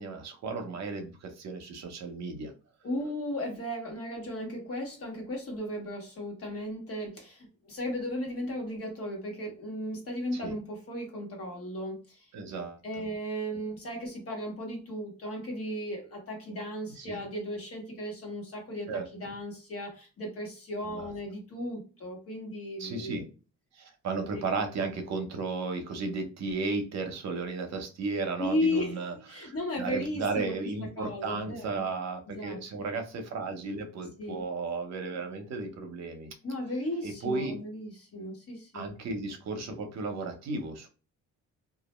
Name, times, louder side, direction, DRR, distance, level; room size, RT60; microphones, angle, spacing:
voice 1, 0.0-2.5 10.3-10.5 12.3-12.8 17.0-17.2 18.9-19.0 20.9-21.1 22.8-23.2 23.7-36.3 37.0-37.6 38.7-40.9, right 3 dB, 60° right, 5 dB, 0.8 m, -34 dB
voice 2, 2.8-12.3 12.8-23.2 28.4-30.5 31.0-31.9 32.3-32.9 34.2-34.4 36.4-38.9, left 1 dB, 50° left, 0 dB, 1.2 m, -35 dB
2.4 x 2.1 x 3.0 m, 0.34 s
cardioid pair, 90°, 30 cm